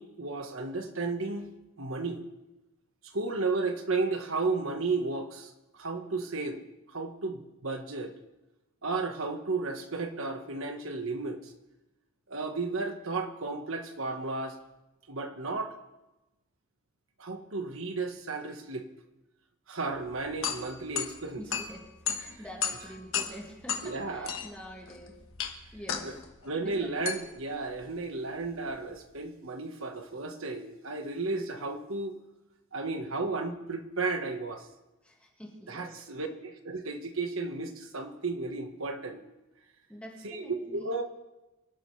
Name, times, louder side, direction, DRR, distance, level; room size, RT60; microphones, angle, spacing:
voice 1, 0.0-1.5 1.8-2.2 3.0-6.6 6.9-8.1 8.8-11.5 12.3-14.6 15.1-15.8 17.2-18.9 19.7-21.4 23.8-24.4 26.0-26.1 26.4-32.1 32.7-34.7 35.7-39.2 40.2-41.0, right 3 dB, 75° right, 6 dB, 1.5 m, -33 dB
sound 1, 19.9-29.1, left 8 dB, 70° left, 1.5 m, -37 dB
voice 2, 21.4-21.9 22.1-25.2 25.5-26.1 26.6-27.0 35.0-36.0 39.9-41.0, equal, 5° left, -2 dB, 2.3 m, -46 dB
24.5 x 12.0 x 3.4 m, 1.0 s
head